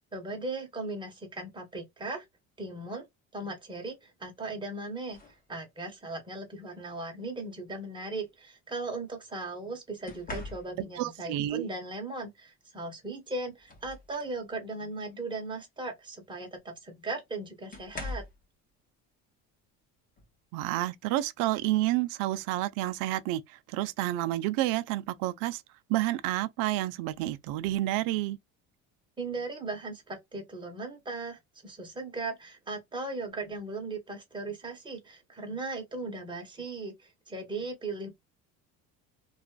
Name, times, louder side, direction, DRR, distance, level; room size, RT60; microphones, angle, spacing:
voice 1, 0.1-2.2 2.6-3.0 3.3-18.2 29.2-38.1, right 2 dB, 15° right, 1.1 m, -38 dB
sound 1, 5.1-5.5 6.7-7.0 10.0-11.0 12.8-12.9 13.3-14.4 14.9-15.2 16.6-16.7 17.7-18.4 20.2-20.3 20.8-21.1, left 2 dB, 25° left, 1.0 m, -42 dB
voice 2, 11.0-11.6 20.5-25.6 25.9-28.4, right 15 dB, 80° right, 0.5 m, -29 dB
2.4 x 2.4 x 2.3 m
cardioid pair, 130°, 31 cm